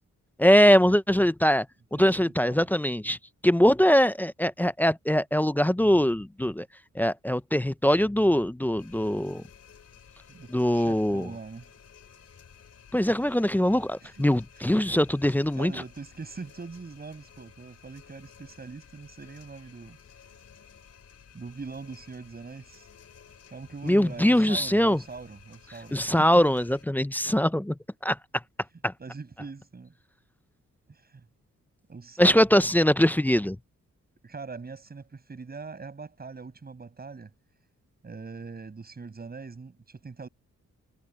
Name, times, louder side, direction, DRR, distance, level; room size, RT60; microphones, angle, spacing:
voice 1, 0.4-1.7 1.9-3.2 3.4-6.7 6.9-9.4 10.5-11.3 12.9-15.7 23.8-25.0 25.9-28.2 28.8-28.9 32.2-33.6, equal, 5° left, 0.5 m, -22 dB
voice 2, 1.9-2.7 10.3-11.7 14.0-14.1 14.6-14.8 15.5-20.0 21.3-22.9 23.5-26.3 29.0-29.9 30.9-31.2 31.9-32.4 34.2-37.3 38.0-40.3, right 4 dB, 30° right, 6.5 m, -42 dB
sound 1, 8.8-26.8, left 7 dB, 55° left, 4.2 m, -54 dB
wide cardioid pair, 130°, 30 cm